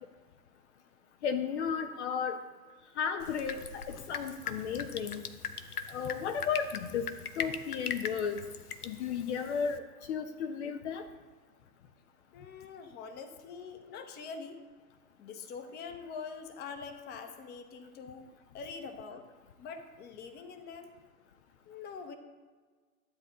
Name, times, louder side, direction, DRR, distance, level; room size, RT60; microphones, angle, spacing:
voice 1, 1.2-2.4 3.0-5.2 5.9-7.1 7.4-8.4 8.8-9.8 10.1-11.0, left 7 dB, 50° left, 7 dB, 0.8 m, -34 dB
Drip, 3.2-9.8, left 6 dB, 90° left, 0.8 m, -41 dB
voice 2, 12.3-14.6 15.2-18.3 18.5-19.3 19.6-20.9 21.7-22.2, left 5 dB, 20° left, 7 dB, 1.0 m, -44 dB
12.5 x 8.3 x 3.8 m, 1.4 s
hypercardioid pair, 115°, 44 cm